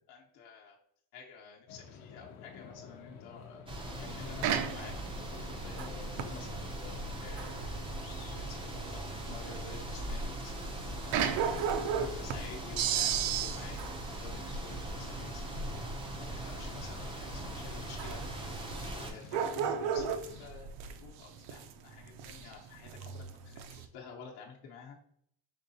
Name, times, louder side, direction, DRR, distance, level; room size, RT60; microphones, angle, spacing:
voice 1, 0.1-0.8 1.1-8.1 8.3-15.6 16.2-18.5 18.9-20.7 21.0-25.0, left 5 dB, 55° left, -2 dB, 0.9 m, -51 dB
sound 1, 1.7-20.5, left 6 dB, 80° left, 0.8 m, -50 dB
sound 2, 3.7-19.1, right 1 dB, 10° right, 0.4 m, -41 dB
sound 3, 4.1-23.9, right 7 dB, 70° right, 0.6 m, -37 dB
5.3 x 3.7 x 2.7 m, 0.67 s
cardioid pair, 155°, 47 cm